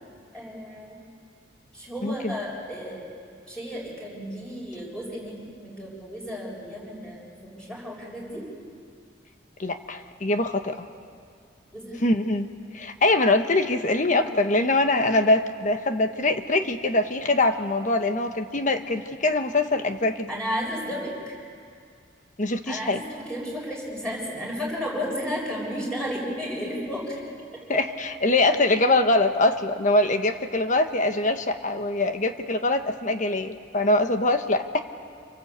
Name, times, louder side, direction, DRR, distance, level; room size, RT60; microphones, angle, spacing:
voice 1, 0.3-1.0 1.7-3.1 3.5-8.5 11.7-12.0 13.9-14.3 20.3-21.4 22.7-27.3, equal, 5° left, -4 dB, 6.9 m, -33 dB
voice 2, 2.0-2.4 9.6-10.9 12.0-12.5 12.7-20.3 22.4-23.0 27.7-34.8, left 2 dB, 45° left, 7 dB, 1.3 m, -23 dB
27.5 x 23.5 x 8.3 m, 2.3 s
head